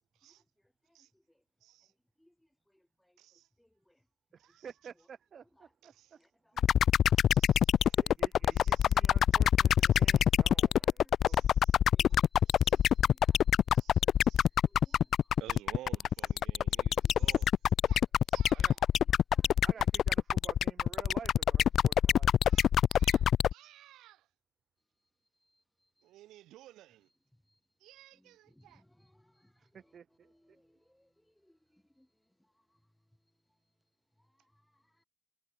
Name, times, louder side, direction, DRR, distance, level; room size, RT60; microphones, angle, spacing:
voice 1, 0.0-1.4 1.8-4.1 4.5-4.6 4.9-5.1 5.4-5.7 6.1-7.2 7.5-8.9 9.3-11.4 11.7-15.4 16.6-17.4 17.7-17.9 18.7-19.9 25.0-26.1 27.3-27.6 28.1-35.0, left 1 dB, 5° left, 5.0 m, -70 dB
voice 2, 1.6-1.9 3.2-3.5 4.4-4.7 5.8-6.2 7.1-8.0 8.5-9.0 9.9-10.3 11.2-11.8 12.5-13.0 13.7-14.5 14.8-15.0 15.4-18.0 18.3-18.8 22.4-24.3 26.0-27.1 27.8-28.8, right 15 dB, 90° right, 7.7 m, -55 dB
voice 3, 4.3-6.2 6.5-6.6 7.9-11.4 18.5-18.7 19.6-22.3 29.6-30.6, right 7 dB, 50° right, 2.7 m, -52 dB
sound 1, 6.6-23.5, left 9 dB, 65° left, 0.4 m, -25 dB
cardioid pair, 90°, 0 cm